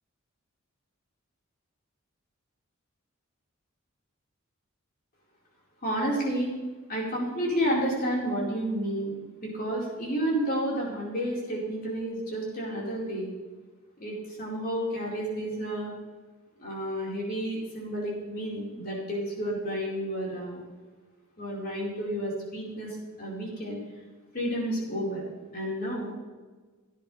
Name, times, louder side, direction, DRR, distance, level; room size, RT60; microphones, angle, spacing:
voice 1, 5.8-6.5 6.9-9.1 9.4-13.3 14.0-15.9 16.6-20.6 21.4-23.8 24.3-25.2 25.5-26.2, equal, 45° left, -4 dB, 4.7 m, -31 dB
17.0 x 10.0 x 3.4 m, 1.3 s
head